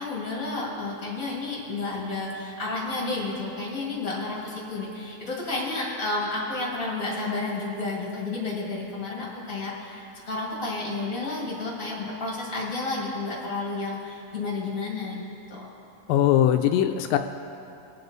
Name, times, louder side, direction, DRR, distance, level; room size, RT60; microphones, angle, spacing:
voice 1, 0.0-15.2 15.5-15.7, left 3 dB, 30° left, -4 dB, 1.7 m, -31 dB
voice 2, 16.1-17.2, left 11 dB, 85° left, 6 dB, 1.9 m, -20 dB
22.5 x 7.8 x 4.0 m, 2.7 s
omnidirectional pair, 4.3 m